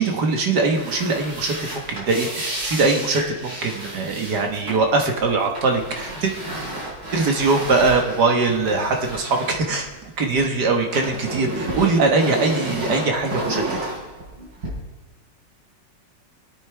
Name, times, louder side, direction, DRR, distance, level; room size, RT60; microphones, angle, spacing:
voice 1, 0.0-6.3 7.1-13.6, right 3 dB, 65° right, 3 dB, 2.0 m, -21 dB
sound 1, 0.6-10.4 10.6-14.7, right 1 dB, 85° right, 4.6 m, -31 dB
24.5 x 8.5 x 3.4 m, 1.2 s
omnidirectional pair, 2.0 m